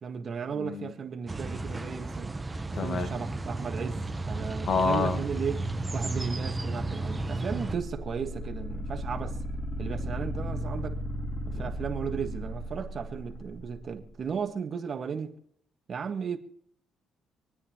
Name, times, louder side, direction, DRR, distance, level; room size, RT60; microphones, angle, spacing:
voice 1, 0.0-2.3 2.7-5.7 5.9-9.4 9.8-11.0 11.5-15.4 15.9-16.4, right 6 dB, 45° right, 1.7 m, -35 dB
voice 2, 0.5-0.9 2.7-3.1 4.6-5.2 11.5-11.6, left 4 dB, 45° left, 1.5 m, -28 dB
sound 1, 1.3-7.8, right 2 dB, 20° right, 1.0 m, -33 dB
sound 2, 7.6-13.8, equal, 30° left, 3.5 m, -35 dB
27.0 x 9.6 x 3.1 m
cardioid pair, 100°, 0 cm